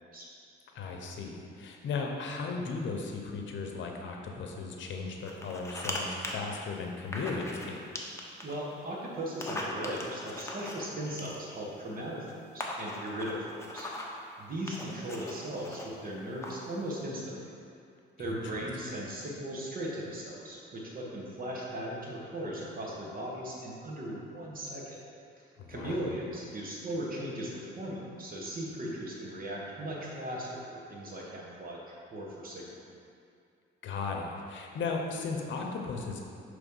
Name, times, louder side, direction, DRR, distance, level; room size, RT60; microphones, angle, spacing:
voice 1, 0.7-7.9 18.2-18.7 25.6-26.0 33.8-36.2, left 4 dB, 70° left, 1 dB, 0.8 m, -36 dB
sound 1, 5.3-6.0 6.2-6.4 7.1-7.7 8.0-8.5 9.3-11.6 12.3-12.4 12.6-14.2 14.7-15.9 16.4-16.7, left 1 dB, 15° left, 0.8 m, -39 dB
voice 2, 8.4-12.2 12.5-13.9 14.4-17.3 18.2-25.0 25.4-31.8 32.1-32.8, right 1 dB, 45° right, -4 dB, 1.4 m, -38 dB
6.1 x 3.2 x 5.4 m, 2.4 s
cardioid pair, 90°, 20 cm